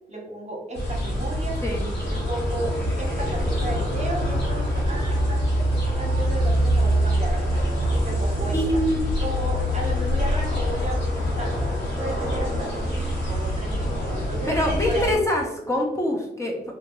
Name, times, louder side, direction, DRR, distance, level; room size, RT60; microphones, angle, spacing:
voice 1, 0.1-1.6 2.1-7.8 8.0-8.8 9.2-14.5 14.8-15.2, right 1 dB, 40° right, -1 dB, 1.0 m, -34 dB
sound 1, 0.7-15.1, equal, 90° left, 1.3 m, -25 dB
voice 2, 8.5-9.0 14.5-16.6, left 1 dB, 15° left, -2 dB, 0.9 m, -24 dB
3.5 x 2.5 x 3.0 m, 0.87 s
cardioid pair, 60°, 18 cm